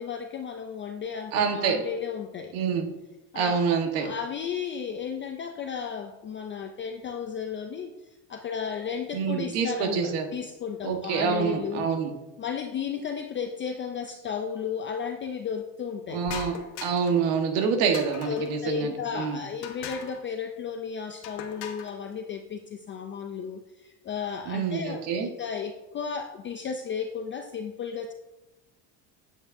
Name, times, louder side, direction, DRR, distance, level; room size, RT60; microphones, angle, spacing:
voice 1, 0.0-2.5 3.3-7.9 8.3-11.9 12.4-16.2 17.5-17.8 18.3-28.1, left 7 dB, 30° left, 5 dB, 0.4 m, -34 dB
voice 2, 1.3-1.8 2.5-2.9 3.3-4.1 9.1-10.3 10.8-12.1 16.1-19.4 24.5-25.3, right 6 dB, 85° right, 4 dB, 1.4 m, -26 dB
sound 1, 16.3-17.2 17.9-18.6 19.6-20.2 21.2-22.0, left 8 dB, 85° left, 1.1 m, -40 dB
8.8 x 8.2 x 2.6 m, 1.0 s
cardioid pair, 135°, 43 cm